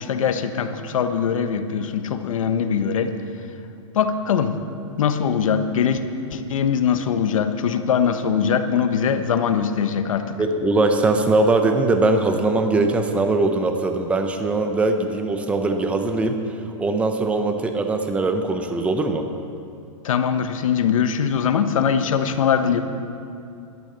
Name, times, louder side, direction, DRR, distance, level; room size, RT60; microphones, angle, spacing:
voice 1, 0.0-3.1 3.9-4.6 5.0-6.0 6.3-10.3 20.0-22.8, left 7 dB, 85° left, 8 dB, 1.2 m, -22 dB
voice 2, 10.4-16.4 16.8-19.2, right 2 dB, 5° right, 5 dB, 0.8 m, -21 dB
13.5 x 12.5 x 6.8 m, 2.5 s
hypercardioid pair, 160°, 17 cm